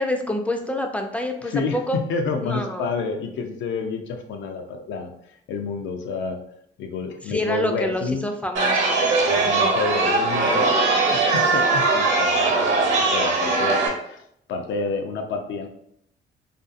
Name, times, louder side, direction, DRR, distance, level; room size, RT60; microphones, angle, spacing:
voice 1, 0.0-2.0 2.4-2.9 7.3-9.0 9.3-9.6, left 1 dB, 5° left, 4 dB, 0.3 m, -27 dB
voice 2, 1.4-5.1 5.5-6.4 6.8-8.2 9.2-10.8 11.1-14.2 14.5-15.7, left 4 dB, 75° left, 5 dB, 0.4 m, -29 dB
Chatter, 8.5-13.9, right 3 dB, 70° right, 0.9 m, -20 dB
2.5 x 2.3 x 2.5 m, 0.73 s
cardioid pair, 90°, 20 cm